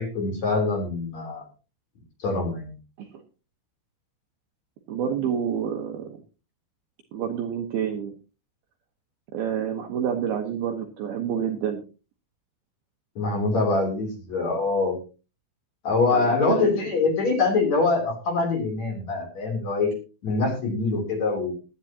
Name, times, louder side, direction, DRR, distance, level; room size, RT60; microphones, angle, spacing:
voice 1, 0.0-1.5 2.2-2.7 13.2-15.0 15.8-19.9 20.2-21.5, left 3 dB, 40° left, 2 dB, 3.9 m, -24 dB
voice 2, 4.9-6.2 7.1-8.1 9.3-11.8 16.1-16.9, right 8 dB, 70° right, 4 dB, 2.4 m, -28 dB
17.5 x 12.0 x 2.9 m, 0.32 s
omnidirectional pair, 5.8 m